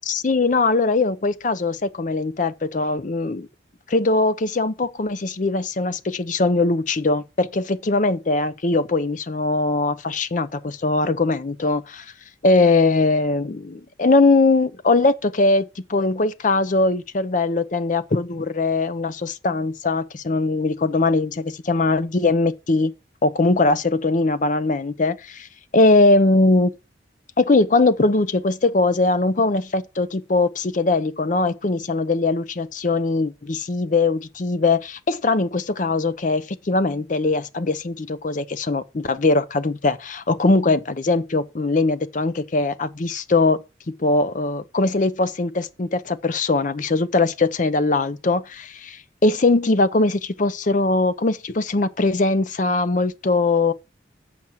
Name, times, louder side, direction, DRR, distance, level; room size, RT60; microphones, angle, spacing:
voice 1, 0.0-3.5 3.9-12.1 12.4-22.9 23.2-25.5 25.7-26.7 27.4-43.6 44.0-53.7, left 3 dB, 40° left, 0.6 m, -21 dB
7.7 x 5.9 x 7.2 m
head